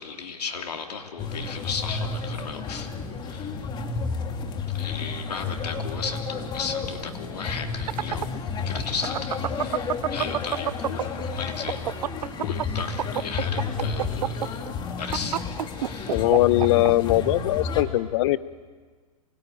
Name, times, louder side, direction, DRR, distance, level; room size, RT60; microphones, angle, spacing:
voice 1, 0.0-2.9 3.2-3.7 4.7-11.9 12.4-14.7 15.0-15.4 15.7-16.3, left 5 dB, 90° left, 3 dB, 3.2 m, -35 dB
sound 1, 1.2-17.8, left 5 dB, 20° left, 2.5 m, -31 dB
sound 2, 7.6-11.2 11.5-16.9, right 11 dB, 80° right, 0.6 m, -28 dB
voice 2, 16.1-18.4, left 16 dB, 50° left, 17 dB, 0.7 m, -21 dB
27.5 x 18.5 x 9.2 m, 1.5 s
hypercardioid pair, 135°, 20 cm